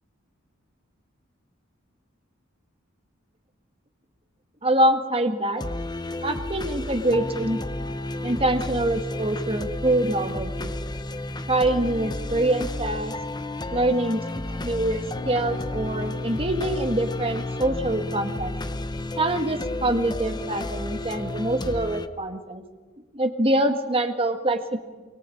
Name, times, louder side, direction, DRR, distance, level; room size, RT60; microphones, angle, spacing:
voice 1, 4.6-5.6 6.2-7.6 8.2-10.7 11.5-13.1 13.7-18.5 19.2-22.6 23.1-24.8, right 1 dB, 30° right, 6 dB, 1.9 m, -25 dB
sound 1, 5.6-22.1, left 2 dB, 20° left, 0.9 m, -32 dB
23.5 x 22.0 x 8.6 m, 1.4 s
head